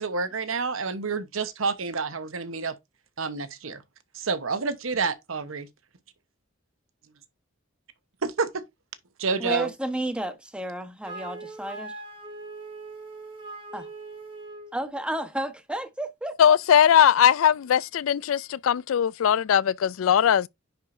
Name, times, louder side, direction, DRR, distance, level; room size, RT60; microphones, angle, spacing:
voice 1, 0.0-2.7 3.2-3.8 4.2-5.7 8.2-8.5 9.2-9.7, right 4 dB, 85° right, 1.0 m, -28 dB
voice 2, 9.4-11.9 13.7-13.9 14.7-16.6, right 1 dB, 5° right, 1.1 m, -32 dB
Wind instrument woodwind instrument, 11.0-14.7, right 2 dB, 25° right, 1.8 m, -41 dB
voice 3, 16.4-20.5, left 9 dB, 75° left, 0.3 m, -20 dB
10.0 x 4.5 x 2.6 m
head